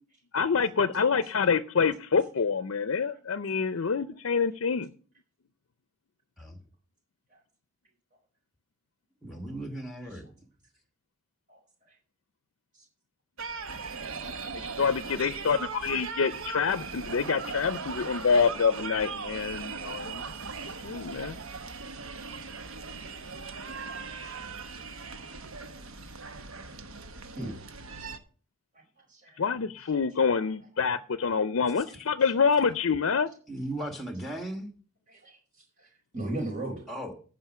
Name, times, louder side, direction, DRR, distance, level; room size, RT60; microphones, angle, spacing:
voice 1, 0.3-4.9 14.8-20.3 20.8-21.4 29.4-33.3, left 5 dB, 70° left, 0.5 m, -26 dB
voice 2, 9.2-10.3 31.7-32.0 33.5-34.7 36.9-37.1, right 1 dB, ahead, 1.3 m, -37 dB
sound 1, 13.4-28.2, right 4 dB, 75° right, 1.0 m, -39 dB
voice 3, 24.1-24.5 27.3-27.5 29.1-29.4 35.1-35.4 36.1-36.8, right 1 dB, 40° right, 5.2 m, -36 dB
15.0 x 5.1 x 6.0 m
head